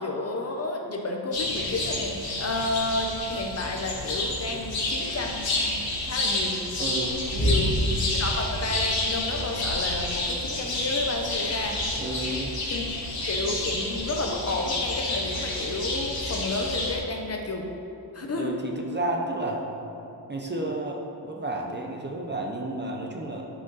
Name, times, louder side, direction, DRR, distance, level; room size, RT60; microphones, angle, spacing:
voice 1, 0.0-6.6 7.3-11.8 12.7-17.7 18.1-18.6, left 2 dB, 35° left, 1 dB, 0.7 m, -31 dB
sound 1, 1.3-17.0, left 1 dB, 55° left, 1.9 m, -29 dB
voice 2, 6.8-7.2 12.0-12.6 18.3-19.6 20.3-23.5, right 2 dB, 25° right, 1 dB, 0.5 m, -31 dB
11.5 x 5.0 x 3.9 m, 3.0 s
wide cardioid pair, 175°, 43 cm